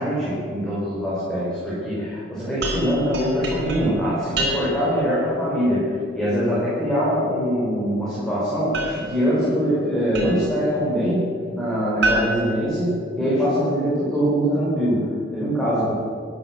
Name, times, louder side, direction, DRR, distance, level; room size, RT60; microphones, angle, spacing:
voice 1, 0.0-15.9, equal, 5° left, -9 dB, 5.3 m, -23 dB
sound 1, 2.6-5.0 8.7-10.6 12.0-13.5, right 2 dB, 60° right, 4.6 m, -29 dB
16.5 x 10.5 x 7.7 m, 2.2 s
head